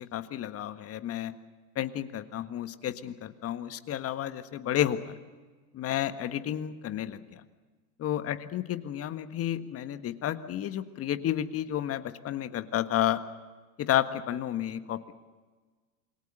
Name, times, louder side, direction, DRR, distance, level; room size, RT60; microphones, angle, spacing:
voice 1, 0.0-1.3 1.7-5.1 5.7-7.4 8.0-13.2 13.8-15.0, left 11 dB, 30° left, 10 dB, 1.6 m, -31 dB
28.0 x 22.0 x 6.8 m, 1.4 s
hypercardioid pair, 95°, 44 cm